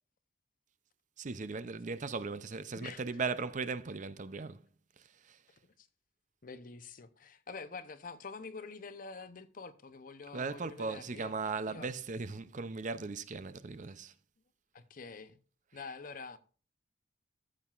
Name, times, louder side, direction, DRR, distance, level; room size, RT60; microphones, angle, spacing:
voice 1, 1.2-4.6 5.2-5.4 10.3-14.1, right 4 dB, 40° right, 0.5 m, -38 dB
voice 2, 6.4-11.3 11.7-11.9 14.7-15.4 15.7-16.4, left 4 dB, 45° left, 0.7 m, -46 dB
14.0 x 7.4 x 2.4 m
head